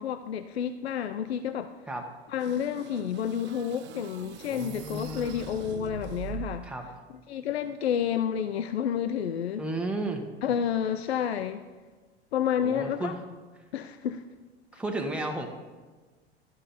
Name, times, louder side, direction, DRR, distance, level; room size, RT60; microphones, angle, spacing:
voice 1, 0.0-1.7 2.3-6.7 7.3-9.6 10.4-11.6 12.3-13.1 13.7-14.2, left 8 dB, 75° left, 10 dB, 0.5 m, -30 dB
sound 1, 2.4-6.7, right 10 dB, 35° right, 0.6 m, -42 dB
voice 2, 4.5-5.4 6.6-6.9 9.6-10.2 12.6-13.2 14.7-15.5, right 2 dB, 5° right, 2 dB, 1.2 m, -33 dB
12.5 x 5.8 x 4.1 m, 1.3 s
figure-of-eight pair, 80°, 32 cm